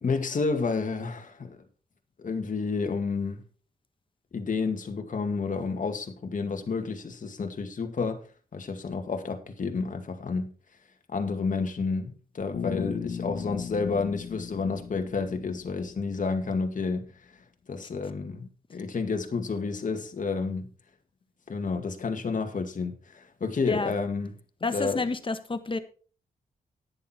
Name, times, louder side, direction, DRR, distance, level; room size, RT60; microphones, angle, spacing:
voice 1, 0.0-1.6 2.2-3.4 4.3-8.2 8.5-10.5 11.1-17.3 17.7-20.7 21.5-24.3 24.7-25.0, left 4 dB, 55° left, 2.2 m, -30 dB
Bass guitar, 12.5-16.4, left 7 dB, 70° left, 1.8 m, -37 dB
voice 2, 24.6-25.8, left 3 dB, 35° left, 1.5 m, -29 dB
10.5 x 10.0 x 4.4 m
cardioid pair, 65°, 16 cm